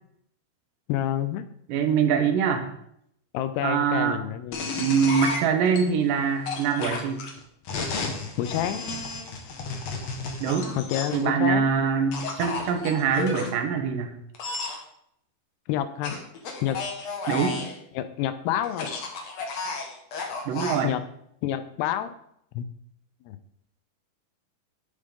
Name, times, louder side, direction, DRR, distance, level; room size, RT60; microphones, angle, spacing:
voice 1, 0.9-1.4 3.3-4.7 8.4-8.9 10.8-11.7 15.7-16.1 16.6-16.8 17.9-18.9 20.8-21.0 21.4-22.1 22.5-22.7 23.3-23.4, left 11 dB, 85° left, 11 dB, 2.8 m, -28 dB
voice 2, 1.7-2.6 3.6-4.2 4.8-7.2 10.4-10.7 11.1-14.1 17.3-17.6 20.5-20.9, right 6 dB, 65° right, 5 dB, 2.7 m, -24 dB
sound 1, 4.5-5.8 6.4-11.3 12.1-13.5 14.3-14.8 16.0-17.7 18.6-20.8, left 4 dB, 55° left, 2.2 m, -32 dB
11.0 x 10.0 x 3.8 m, 0.72 s
omnidirectional pair, 4.7 m